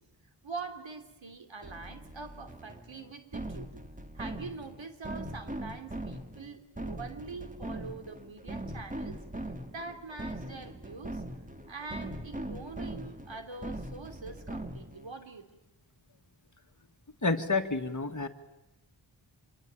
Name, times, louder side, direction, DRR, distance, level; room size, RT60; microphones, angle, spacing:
voice 1, 0.4-3.7 4.1-11.2 11.7-15.6, right 4 dB, 80° right, 7 dB, 3.3 m, -44 dB
sound 1, 1.6-15.1, right 1 dB, 15° right, 2.3 m, -41 dB
voice 2, 17.2-18.3, left 3 dB, 40° left, 6 dB, 2.0 m, -29 dB
26.5 x 24.0 x 9.0 m, 0.96 s
wide cardioid pair, 60°, 45 cm